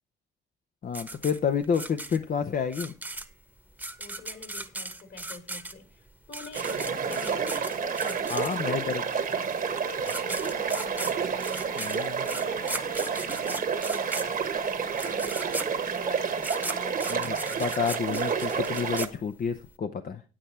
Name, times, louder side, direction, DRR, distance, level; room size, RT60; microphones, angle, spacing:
voice 1, 0.8-2.9 8.3-9.0 11.8-12.3 17.1-20.2, left 6 dB, 45° left, 9 dB, 0.8 m, -29 dB
sound 1, 0.9-8.9 9.7-9.8 10.0-19.7, right 2 dB, 10° right, 1.1 m, -38 dB
voice 2, 4.0-8.3 8.7-9.4 9.8-11.9 12.3-17.5, left 4 dB, 60° left, 6 dB, 3.3 m, -46 dB
sound 2, 6.5-19.1, right 6 dB, 45° right, 1.3 m, -30 dB
9.1 x 8.9 x 4.3 m, 0.35 s
cardioid pair, 90°, 20 cm